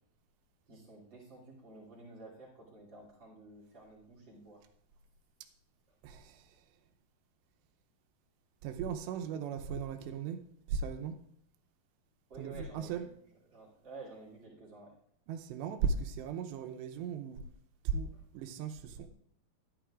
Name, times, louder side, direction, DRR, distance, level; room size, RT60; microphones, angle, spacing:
voice 1, 0.7-4.6 12.3-13.0 13.5-14.9 18.1-18.2, right 3 dB, 30° right, -3 dB, 2.9 m, -51 dB
voice 2, 6.0-6.7 8.6-10.4 10.7-11.2 12.4-13.1 15.3-17.4 17.8-19.1, right 6 dB, 90° right, 6 dB, 3.0 m, -37 dB
13.5 x 11.5 x 2.5 m, 0.67 s
omnidirectional pair, 4.9 m